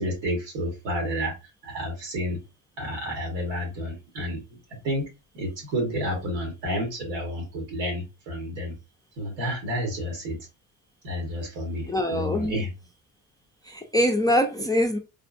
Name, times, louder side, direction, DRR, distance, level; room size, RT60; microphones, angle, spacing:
voice 1, 0.0-1.3 1.6-2.4 2.8-4.4 4.8-5.0 5.3-8.7 9.2-10.4 11.0-12.7, equal, 90° right, 1.7 m, -30 dB
voice 2, 11.9-12.6 13.6-15.0, equal, 10° left, 0.4 m, -24 dB
3.5 x 2.1 x 2.5 m
supercardioid pair, 80°, 47 cm